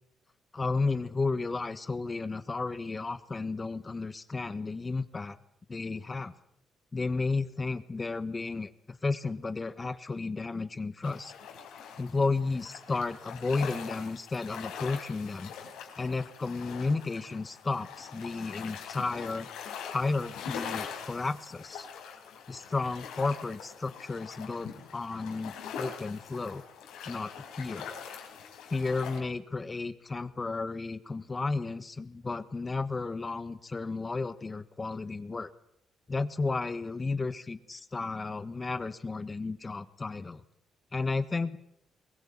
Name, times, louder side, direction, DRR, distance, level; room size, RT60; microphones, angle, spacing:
voice 1, 0.5-5.4 5.7-6.3 6.9-11.3 12.0-15.5 16.0-19.5 19.9-21.9 22.5-26.6 27.1-27.3 27.6-27.9 28.7-35.5 36.1-40.4 40.9-41.6, left 3 dB, 25° left, 12 dB, 1.3 m, -33 dB
sound 1, 11.0-29.2, left 7 dB, 90° left, 4.6 m, -43 dB
22.5 x 17.5 x 8.7 m, 0.75 s
cardioid pair, 90°, 0 cm